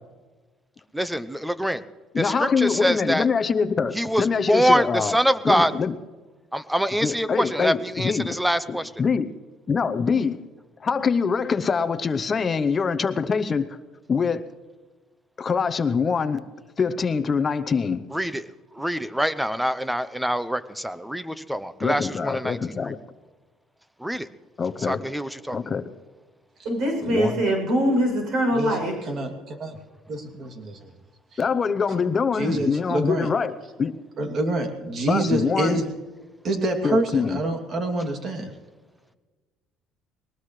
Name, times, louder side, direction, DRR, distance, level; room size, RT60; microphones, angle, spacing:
voice 1, 0.9-1.8 2.2-3.3 3.9-5.7 6.5-8.9 18.1-18.4 18.8-22.9 24.0-24.3 24.8-25.6, equal, 5° right, 14 dB, 0.7 m, -25 dB
voice 2, 2.1-5.2 5.4-5.9 7.0-8.4 8.7-9.3 9.7-10.4 10.8-13.8 14.1-14.4 15.4-16.4 16.8-18.0 21.8-23.0 24.6-25.0 25.5-25.8 27.0-27.4 31.4-33.5 33.8-33.9 35.1-35.8 36.8-37.4, left 5 dB, 30° left, 11 dB, 0.8 m, -24 dB
voice 3, 26.6-28.9, right 1 dB, 60° right, 1 dB, 7.2 m, -23 dB
voice 4, 30.1-30.9 31.3-31.4 32.3-33.3 34.2-35.9 36.4-38.5, right 2 dB, 40° right, 3 dB, 2.7 m, -26 dB
21.5 x 19.0 x 3.2 m, 1.3 s
cardioid pair, 130°, 0 cm